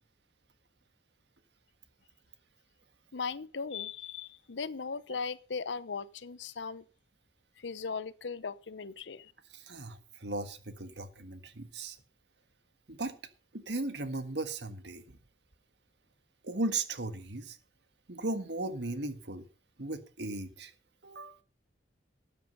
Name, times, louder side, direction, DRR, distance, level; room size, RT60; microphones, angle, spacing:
voice 1, 3.1-6.8 7.6-9.3, left 5 dB, 75° left, 0.7 m, -38 dB
voice 2, 9.5-12.0 12.9-13.1 13.5-15.2 16.4-17.6 18.1-19.4 19.8-20.7 21.0-21.4, right 2 dB, 65° right, 1.6 m, -37 dB
13.0 x 9.2 x 5.3 m
head